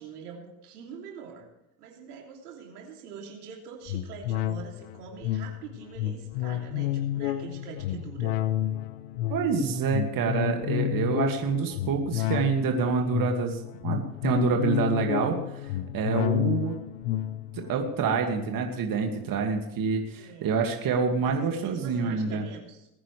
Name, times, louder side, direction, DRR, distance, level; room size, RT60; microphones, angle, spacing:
voice 1, 0.0-1.5 1.8-8.4 16.4-16.7 20.1-20.5 21.2-22.9, right 6 dB, 90° right, 0 dB, 3.2 m, -44 dB
sound 1, 3.9-19.6 20.0-20.1, left 12 dB, 75° left, 1.1 m, -31 dB
voice 2, 9.3-15.6 15.9-16.7 17.5-22.5, right 5 dB, 50° right, 3 dB, 2.3 m, -27 dB
20.5 x 9.8 x 3.4 m, 0.89 s
hypercardioid pair, 75°, 44 cm